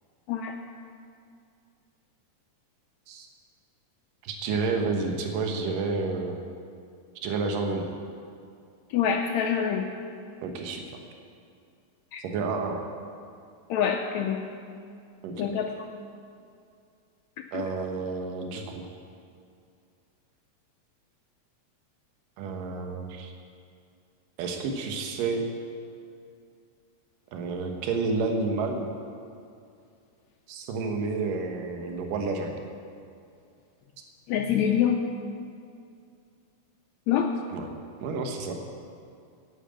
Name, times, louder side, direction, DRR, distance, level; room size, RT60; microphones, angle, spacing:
voice 1, 4.2-6.4 7.2-7.9 10.4-10.8 12.2-12.9 15.2-15.5 17.5-18.9 22.4-23.3 24.4-25.4 27.3-28.8 30.5-32.6 37.5-37.7 38.0-38.6, right 4 dB, 75° right, 3 dB, 2.8 m, -30 dB
voice 2, 8.9-9.9 12.1-12.2 13.7-14.4 15.4-15.9 17.4-17.7 34.3-35.0 37.1-37.3, left 8 dB, 90° left, 3 dB, 1.6 m, -26 dB
10.0 x 9.4 x 8.8 m, 2.4 s
omnidirectional pair, 3.9 m